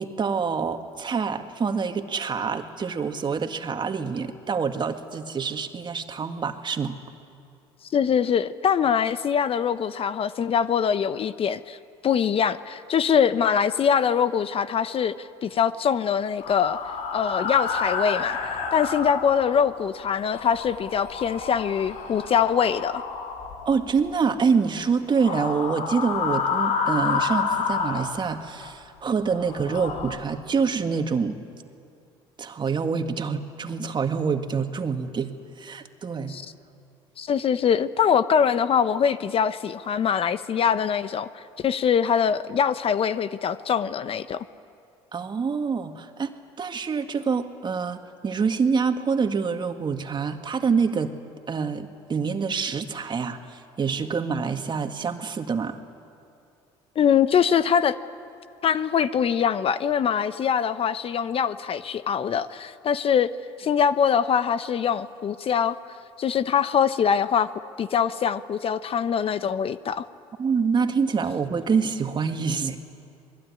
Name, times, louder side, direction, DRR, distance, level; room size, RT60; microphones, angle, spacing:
voice 1, 0.0-7.0 23.7-31.3 32.4-36.4 45.1-46.3 46.6-51.1 51.5-55.8 70.4-72.8, right 5 dB, 35° right, 6 dB, 2.0 m, -26 dB
voice 2, 7.9-11.8 12.0-16.8 17.1-18.4 18.7-23.0 36.3-36.4 37.2-44.4 57.0-58.0 58.6-63.3 63.6-65.8 66.2-67.5 67.8-70.1, left 7 dB, 45° left, 14 dB, 0.9 m, -23 dB
sound 1, 16.4-19.8 20.2-24.2 25.1-28.7 29.2-30.2, left 5 dB, 65° left, 3.0 m, -29 dB
27.5 x 20.5 x 9.9 m, 2.4 s
supercardioid pair, 70°, 13 cm